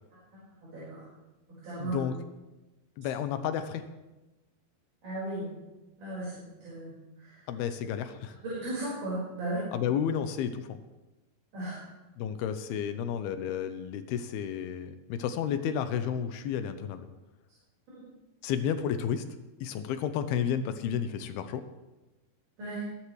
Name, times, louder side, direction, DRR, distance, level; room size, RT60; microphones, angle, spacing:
voice 1, 0.3-1.0 1.6-2.0 5.0-5.5 6.0-6.9 7.2-7.5 8.4-9.7 11.5-11.8 22.6-22.9, right 2 dB, 45° right, -9 dB, 6.3 m, -36 dB
voice 2, 1.8-2.1 3.0-3.8 7.5-8.4 9.7-10.8 12.2-17.1 18.4-19.2 19.6-21.6, left 8 dB, 80° left, 10 dB, 2.4 m, -31 dB
22.0 x 11.5 x 3.2 m, 1.1 s
omnidirectional pair, 5.0 m